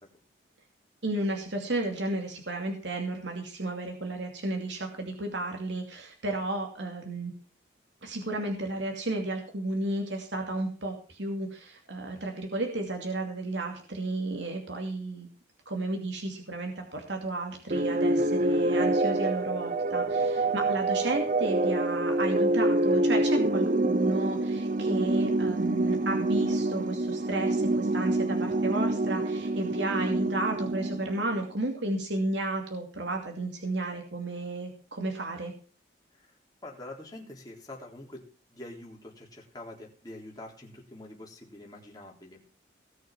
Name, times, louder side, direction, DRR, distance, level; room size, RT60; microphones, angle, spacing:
voice 1, 1.0-7.3 8.0-15.3 15.7-35.5, right 2 dB, 65° right, 3 dB, 2.6 m, -33 dB
sound 1, 17.7-31.4, right 2 dB, 40° right, 0.6 m, -26 dB
voice 2, 36.6-42.4, left 1 dB, 20° left, -2 dB, 3.8 m, -45 dB
18.5 x 6.6 x 6.1 m, 0.40 s
head